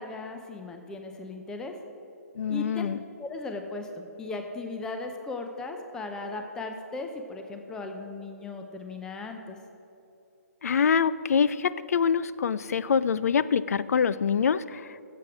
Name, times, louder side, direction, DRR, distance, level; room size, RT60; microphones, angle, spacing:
voice 1, 0.0-1.7 2.5-2.9 3.2-9.6, left 3 dB, 5° left, 4 dB, 0.6 m, -37 dB
voice 2, 2.4-3.0 10.6-15.0, left 6 dB, 65° left, 16 dB, 0.4 m, -25 dB
15.5 x 7.7 x 4.9 m, 2.8 s
hypercardioid pair, 150°, 9 cm